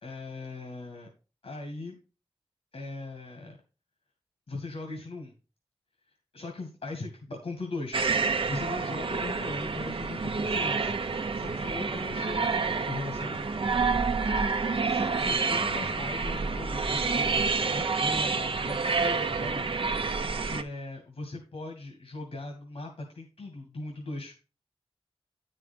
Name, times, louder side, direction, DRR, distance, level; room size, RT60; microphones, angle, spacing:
voice 1, 0.0-1.1 1.4-2.0 2.7-3.6 4.5-5.3 6.3-8.1 8.5-13.5 14.9-19.7 20.1-24.3, left 2 dB, 75° left, 2 dB, 2.2 m, -39 dB
sound 1, 7.9-20.6, right 4 dB, 60° right, 0.8 m, -28 dB
9.4 x 5.5 x 5.2 m, 0.34 s
cardioid pair, 50°, 10 cm